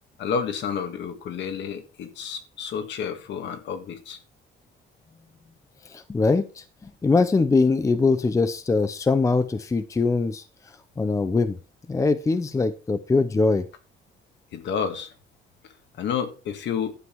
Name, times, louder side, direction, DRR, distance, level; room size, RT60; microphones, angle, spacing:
voice 1, 0.2-4.2 14.5-15.1 16.0-17.0, left 7 dB, 60° left, 1.9 m, -30 dB
voice 2, 5.8-10.4 11.0-11.6 11.9-13.7, left 3 dB, 15° left, 0.6 m, -22 dB
11.5 x 7.5 x 4.6 m
cardioid pair, 155°, 21 cm